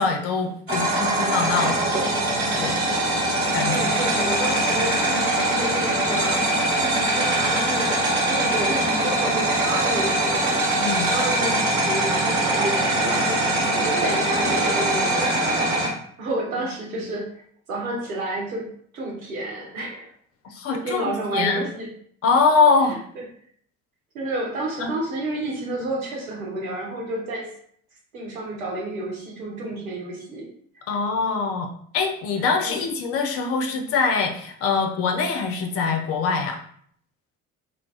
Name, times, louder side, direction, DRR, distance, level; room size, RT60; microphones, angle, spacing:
voice 1, 0.0-1.9 2.6-2.8 3.5-3.9 4.6-4.8 10.8-11.1 16.8-17.1 20.4-21.7 22.2-23.0 24.8-24.9 30.9-36.6, left 4 dB, 35° left, 3 dB, 0.4 m, -23 dB
sound 1, 0.7-15.9, right 1 dB, 30° right, 1.2 m, -22 dB
voice 2, 3.4-6.4 6.8-7.9 8.3-10.5 11.0-15.8 16.2-17.4 17.7-20.1 20.7-21.9 22.9-23.2 24.1-27.5 28.1-30.5 32.6-32.8, right 1 dB, 75° right, -3 dB, 0.9 m, -30 dB
2.3 x 2.0 x 3.8 m, 0.62 s
figure-of-eight pair, 55°, 42 cm